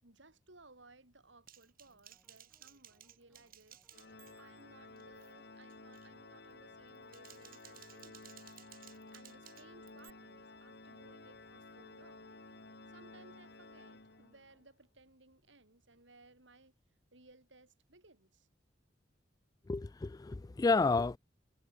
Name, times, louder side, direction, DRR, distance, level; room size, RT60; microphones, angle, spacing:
voice 1, 0.0-8.3 9.1-12.4 12.9-16.7 17.1-18.5, right 2 dB, 80° right, 5.9 m, -62 dB
Typing, 1.5-4.6 5.0-5.3 5.7-6.1 6.9-10.1, right 12 dB, 50° right, 2.6 m, -58 dB
sound 1, 1.8-15.0, equal, 5° right, 7.7 m, -75 dB
Organ, 3.9-14.6, left 2 dB, 60° left, 3.3 m, -54 dB
voice 2, 19.7-21.2, left 3 dB, 20° left, 0.3 m, -30 dB
head